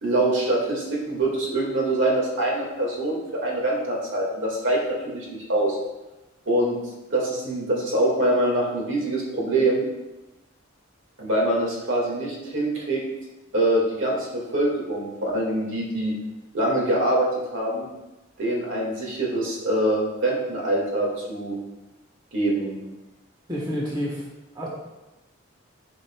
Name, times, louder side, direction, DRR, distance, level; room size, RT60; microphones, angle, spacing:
voice 1, 0.0-5.8 6.5-6.8 7.1-9.9 11.2-13.0 13.5-16.2 16.5-17.9 18.4-21.6 22.3-22.8, right 1 dB, 70° right, -2 dB, 1.9 m, -24 dB
voice 2, 23.5-24.3 24.5-24.7, equal, 20° right, -4 dB, 1.3 m, -28 dB
11.0 x 5.2 x 2.3 m, 1.0 s
head